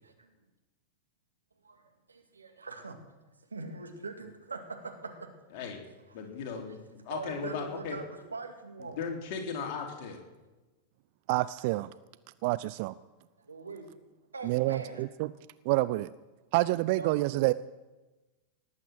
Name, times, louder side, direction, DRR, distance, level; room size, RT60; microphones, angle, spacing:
voice 1, 2.1-3.0 3.5-5.3 7.1-9.0 13.4-13.9 14.3-15.0 17.0-17.4, right 4 dB, 75° right, 5 dB, 2.2 m, -42 dB
voice 2, 6.1-8.0 8.8-10.2, left 6 dB, 45° left, 2 dB, 3.3 m, -37 dB
voice 3, 11.3-11.9 12.4-12.9 14.4-15.3 15.7-16.1 16.5-17.5, right 19 dB, 45° right, 16 dB, 0.4 m, -28 dB
18.5 x 8.4 x 7.6 m, 1.1 s
figure-of-eight pair, 90°, 0 cm